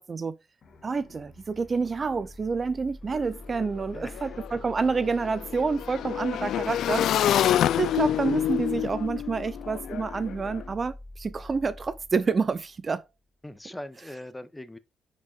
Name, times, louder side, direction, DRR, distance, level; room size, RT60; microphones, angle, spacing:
sound 1, 0.6-13.3, left 1 dB, 50° left, 1.9 m, -45 dB
voice 1, 0.8-7.4 7.8-13.0, right 4 dB, 35° right, 0.5 m, -28 dB
Motorcycle / Engine, 3.1-3.2 3.5-10.6, left 11 dB, 75° left, 0.3 m, -28 dB
voice 2, 3.9-4.6 13.4-14.8, left 1 dB, 10° left, 0.8 m, -41 dB
9.3 x 5.2 x 2.4 m
cardioid pair, 90°, 0 cm